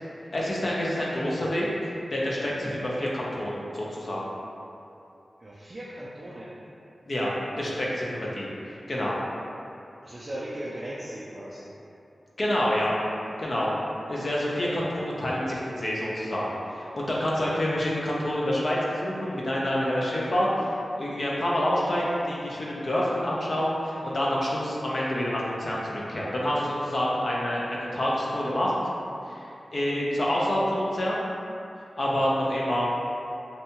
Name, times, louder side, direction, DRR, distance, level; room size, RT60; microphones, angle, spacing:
voice 1, 0.3-4.2 7.1-8.5 8.9-9.2 12.4-12.9 13.4-13.7 14.1-20.7 21.0-28.8 29.3-31.2 32.0-32.9, left 1 dB, 55° left, -5 dB, 0.5 m, -27 dB
voice 2, 5.4-6.6 10.0-11.7, right 1 dB, 35° right, -8 dB, 0.3 m, -38 dB
2.6 x 2.2 x 2.7 m, 2.6 s
wide cardioid pair, 75°, 0 cm